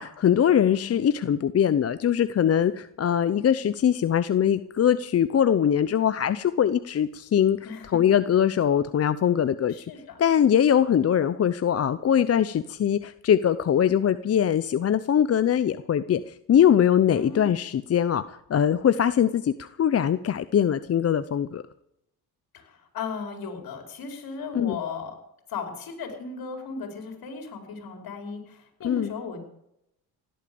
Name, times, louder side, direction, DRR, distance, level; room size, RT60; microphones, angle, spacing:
voice 1, 0.0-7.6 7.9-9.9 10.2-21.6 24.5-24.8 28.8-29.1, left 9 dB, 40° left, 13 dB, 0.7 m, -22 dB
voice 2, 0.7-1.0 7.6-8.0 9.7-10.2 17.1-17.5 22.5-25.2 25.5-29.4, left 5 dB, 65° left, 4 dB, 5.1 m, -36 dB
17.0 x 12.0 x 7.1 m, 0.79 s
cardioid pair, 95°, 38 cm